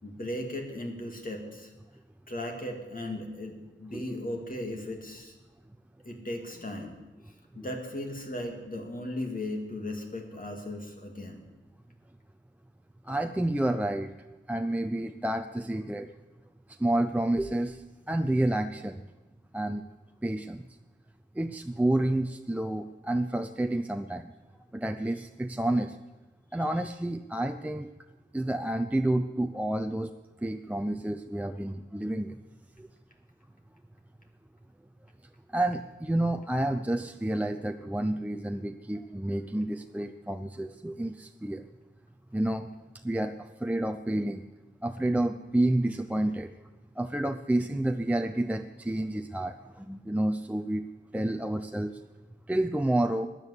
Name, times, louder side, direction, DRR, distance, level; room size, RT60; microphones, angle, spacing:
voice 1, 0.0-1.7 2.3-5.3 6.0-6.9 7.3-11.4, left 1 dB, 45° left, 2 dB, 2.6 m, -37 dB
voice 2, 13.0-14.1 14.5-16.1 16.8-19.0 19.5-19.9 20.2-20.7 21.3-24.3 24.7-26.0 26.5-27.9 28.3-30.1 30.4-32.4 32.8-32.9 35.5-41.6 42.3-42.7 43.0-44.4 44.8-46.5 47.0-50.8 51.1-52.0 52.5-53.3, right 1 dB, 5° right, 6 dB, 0.6 m, -29 dB
16.0 x 10.5 x 8.3 m, 1.1 s
wide cardioid pair, 95°, 19 cm